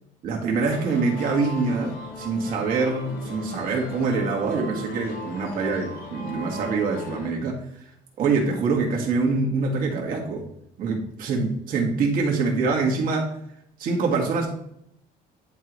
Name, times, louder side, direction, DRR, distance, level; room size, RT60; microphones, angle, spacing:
voice 1, 0.2-7.6 8.2-10.4 10.8-13.3 13.8-14.5, right 4 dB, 60° right, -1 dB, 2.1 m, -25 dB
sound 1, 0.6-7.3, left 2 dB, 70° left, 1.9 m, -38 dB
10.5 x 3.9 x 3.1 m, 0.74 s
cardioid pair, 145°, 17 cm